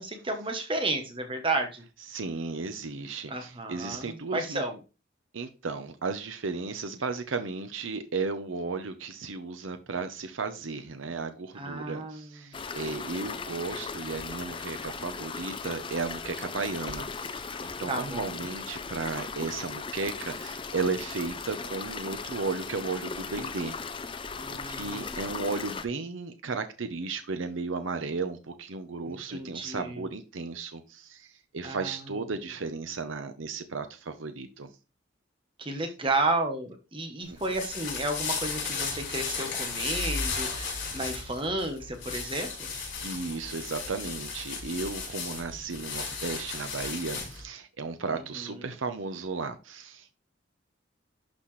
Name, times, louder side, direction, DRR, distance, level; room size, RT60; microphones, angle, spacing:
voice 1, 0.0-1.8 3.3-4.8 11.5-12.6 17.9-18.5 24.4-25.2 29.1-30.0 31.6-32.0 35.6-42.7 48.1-48.6, right 2 dB, 25° right, 1.0 m, -32 dB
voice 2, 2.1-4.6 5.3-23.7 24.6-34.7 37.3-37.4 43.0-50.1, right 4 dB, 85° right, 0.8 m, -34 dB
sound 1, 12.5-25.9, left 5 dB, 25° left, 0.5 m, -38 dB
sound 2, 37.2-47.4, left 5 dB, 70° left, 4.8 m, -35 dB
11.5 x 4.2 x 3.2 m
head